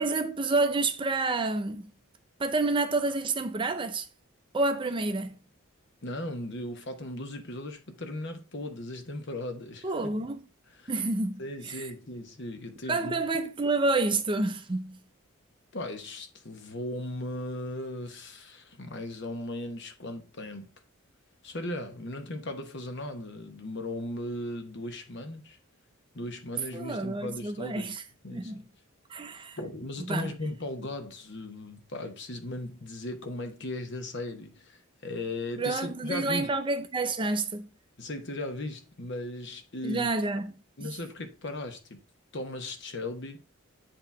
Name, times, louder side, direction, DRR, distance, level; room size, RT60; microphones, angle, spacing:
voice 1, 0.0-1.9 2.4-4.1 4.5-5.4 9.8-10.4 10.9-11.9 12.9-15.0 26.7-28.0 28.3-28.7 29.1-29.6 30.1-30.3 35.6-37.7 39.8-40.5 40.8-41.0, right 3 dB, 25° right, 0.5 m, -29 dB
voice 2, 6.0-10.1 10.7-10.9 11.4-13.1 15.7-20.7 21.4-25.6 26.1-27.9 28.2-28.5 29.6-36.5 38.0-40.1 40.8-42.0 42.3-43.4, left 1 dB, 55° left, 1.0 m, -37 dB
7.9 x 2.9 x 4.6 m
head